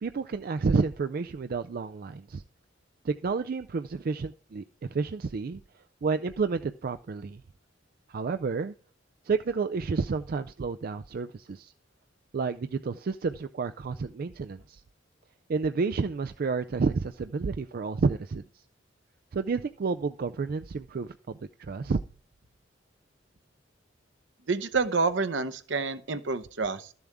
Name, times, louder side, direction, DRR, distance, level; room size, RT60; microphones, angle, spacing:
voice 1, 0.0-2.4 3.0-4.6 4.9-5.6 6.0-7.4 8.1-8.7 9.2-11.7 12.3-14.8 15.5-18.6 19.3-22.0, right 4 dB, 50° right, 0.4 m, -30 dB
voice 2, 24.5-26.9, right 4 dB, 70° right, 0.9 m, -28 dB
13.0 x 7.1 x 3.5 m
head